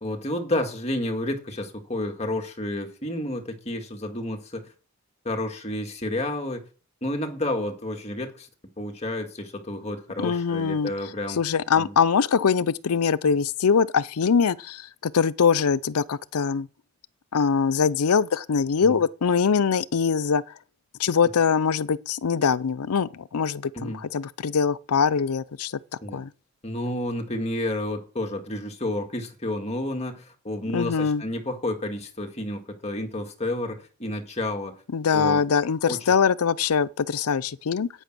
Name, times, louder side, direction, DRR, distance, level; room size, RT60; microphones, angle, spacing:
voice 1, 0.0-4.7 5.2-6.6 7.0-8.5 8.8-11.4 11.8-11.9 18.8-19.0 23.7-24.0 26.0-26.2 26.6-34.8 35.1-35.4 35.8-36.1, left 1 dB, 30° left, 1.9 m, -30 dB
voice 2, 10.2-10.9 11.4-16.7 17.3-20.4 21.0-25.7 26.1-26.3 30.7-31.2 34.9-37.9, left 6 dB, 90° left, 0.5 m, -23 dB
10.0 x 9.0 x 6.1 m
head